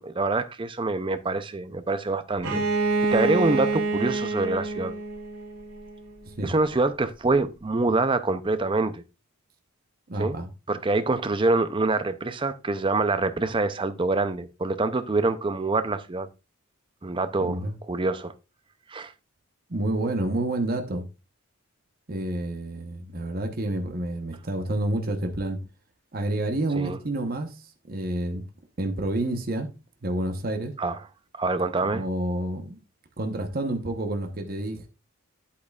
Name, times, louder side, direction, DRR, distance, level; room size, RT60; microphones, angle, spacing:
voice 1, 0.0-2.6 3.1-4.9 6.4-9.0 10.2-10.4 10.7-16.3 17.0-17.6 17.9-18.3 18.9-19.1 26.8-27.0 30.8-31.0 31.3-32.0, right 3 dB, 20° right, 0.5 m, -25 dB
Bowed string instrument, 2.4-6.1, right 3 dB, 80° right, 2.7 m, -27 dB
voice 2, 10.1-10.5 17.4-17.7 19.7-21.0 22.1-25.6 26.1-27.6 27.9-28.4 28.8-29.7 30.0-30.7 31.8-32.8 33.2-34.9, right 1 dB, 40° right, 0.9 m, -29 dB
8.6 x 8.4 x 2.3 m
head